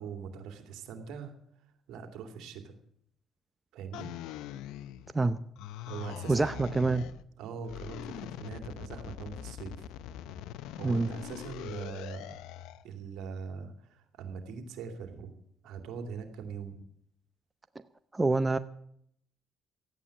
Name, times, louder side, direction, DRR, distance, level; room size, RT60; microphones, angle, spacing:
voice 1, 0.0-1.3 1.9-2.7 3.7-4.1 5.9-7.1 7.4-9.9 10.7-12.4 12.8-15.3 15.6-16.8, right 6 dB, 80° right, 6 dB, 2.7 m, -42 dB
sound 1, 3.9-5.2 5.6-7.2 7.6-12.8, left 12 dB, 85° left, 0.6 m, -43 dB
voice 2, 6.3-7.0 10.8-11.1 18.1-18.6, right 3 dB, 20° right, 12 dB, 0.7 m, -26 dB
14.0 x 9.3 x 8.6 m, 0.69 s
cardioid pair, 85°, 0 cm